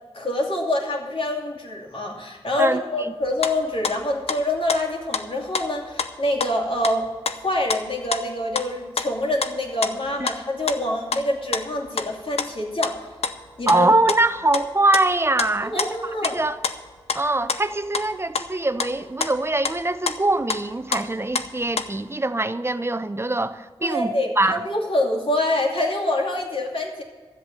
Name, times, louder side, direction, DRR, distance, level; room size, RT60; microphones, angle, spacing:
voice 1, 0.1-7.1 7.4-13.1 13.6-13.9 15.6-16.4 23.8-27.0, left 1 dB, 60° left, -1 dB, 2.6 m, -26 dB
voice 2, 2.6-3.1 10.2-10.3 13.7-15.9 16.3-16.6 17.1-24.6, right 2 dB, 25° right, 12 dB, 0.7 m, -23 dB
sound 1, 3.2-3.5 3.8-4.4 4.7-6.1 6.4-8.3 8.5-8.7 9.0-10.4 10.7-11.2 11.5-12.1 12.4-13.0 13.2-14.7 14.9-16.4 16.6-18.1 18.3-18.5 18.8-18.9 19.2-20.6 20.9-22.0, left 5 dB, 90° left, 0.7 m, -28 dB
13.0 x 7.9 x 7.1 m, 1.5 s
cardioid pair, 55°, 10 cm